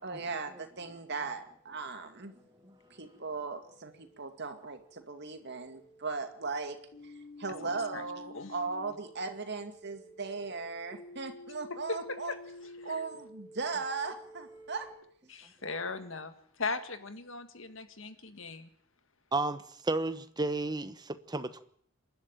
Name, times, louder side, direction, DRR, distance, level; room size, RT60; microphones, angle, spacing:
voice 1, 0.0-2.3 2.9-6.8 7.0-7.1 7.4-12.3 12.8-14.9, right 4 dB, 55° right, 7 dB, 2.3 m, -38 dB
sound 1, 1.7-14.9, left 1 dB, 45° left, 5.4 m, -52 dB
voice 2, 7.6-8.0 8.3-8.5 11.9-12.4 12.8-12.9 15.3-18.7, left 3 dB, 65° left, 9 dB, 1.9 m, -38 dB
voice 3, 19.3-21.6, right 2 dB, 20° right, 11 dB, 1.1 m, -32 dB
27.0 x 11.5 x 9.1 m, 0.63 s
head